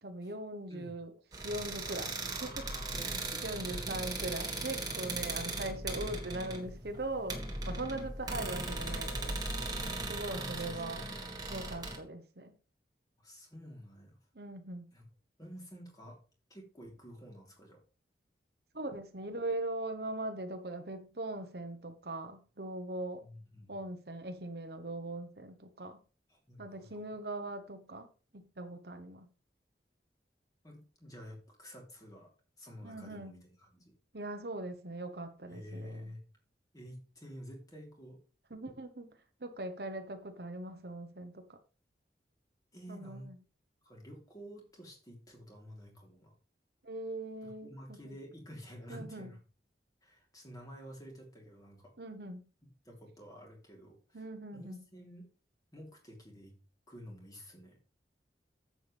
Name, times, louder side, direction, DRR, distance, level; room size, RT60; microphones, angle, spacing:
voice 1, 0.0-1.1 1.4-2.7 3.4-9.4 10.1-11.0 11.5-12.5 14.3-14.9 18.7-23.2 23.7-26.0 26.6-28.1 28.3-29.3 32.8-33.4 34.1-36.1 38.5-41.6 42.9-43.4 46.8-48.1 48.9-49.3 52.0-52.4 54.1-54.8, right 2 dB, 65° right, 1.2 m, -40 dB
sound 1, 1.3-12.0, right 2 dB, 20° right, 1.9 m, -38 dB
voice 2, 2.9-3.4 3.7-4.0 8.0-8.1 10.3-11.1 13.2-14.2 14.9-15.1 15.4-16.2 16.5-17.8 23.2-23.8 26.3-27.1 30.6-32.3 32.6-33.9 35.5-36.2 36.7-38.2 42.7-43.3 43.8-46.4 47.4-49.4 50.0-51.9 52.6-54.3 54.5-55.3 55.7-56.5 56.9-57.8, equal, 20° left, 3.5 m, -50 dB
10.5 x 7.9 x 3.5 m
head